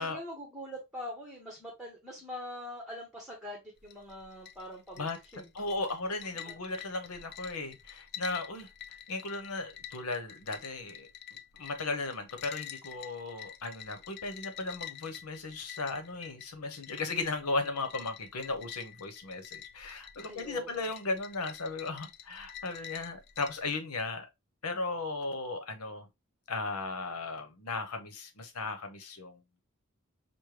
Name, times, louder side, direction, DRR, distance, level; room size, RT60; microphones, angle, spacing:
voice 1, 0.0-5.5 6.4-6.5 20.2-20.9, equal, ahead, 1.0 m, -43 dB
sound 1, 3.8-23.7, left 10 dB, 50° left, 0.5 m, -48 dB
voice 2, 5.5-11.1 11.5-24.3 24.6-26.1 26.5-29.6, left 3 dB, 90° left, 0.9 m, -36 dB
6.1 x 2.2 x 3.2 m
head